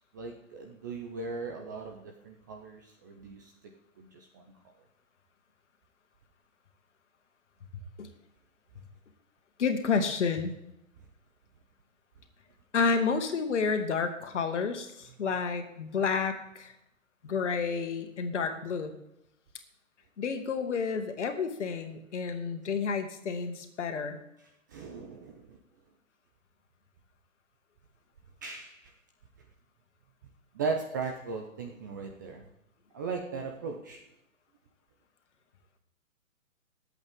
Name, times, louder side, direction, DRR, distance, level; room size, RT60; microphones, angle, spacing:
voice 1, 0.1-3.5 4.0-4.4 24.7-25.6 28.4-28.9 30.5-32.5 32.9-34.0, right 4 dB, 15° right, 2 dB, 0.5 m, -37 dB
voice 2, 9.6-10.5 12.7-16.7 17.2-18.9 20.2-24.2, left 5 dB, 60° left, 6 dB, 2.1 m, -30 dB
21.5 x 8.2 x 3.7 m, 0.82 s
hypercardioid pair, 145°, 41 cm